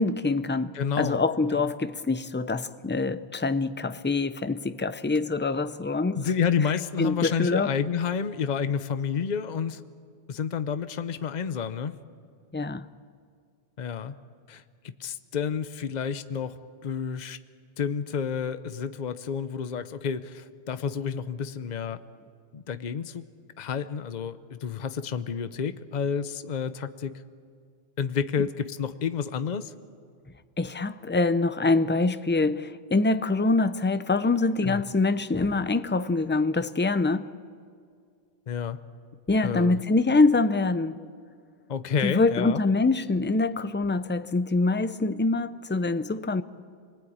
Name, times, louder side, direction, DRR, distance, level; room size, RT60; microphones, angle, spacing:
voice 1, 0.0-6.2 7.0-7.7 12.5-12.8 30.6-37.3 39.3-41.0 42.0-46.4, left 3 dB, 15° left, 0.4 m, -25 dB
voice 2, 0.7-1.2 1.5-1.7 6.1-9.8 10.3-12.0 13.8-14.1 14.5-16.6 16.8-17.4 17.8-22.0 22.5-23.3 23.6-27.1 28.0-29.7 34.6-34.8 38.5-38.8 39.4-39.8 41.7-42.6, left 7 dB, 45° left, 0.8 m, -30 dB
27.5 x 20.0 x 8.7 m
omnidirectional pair, 1.1 m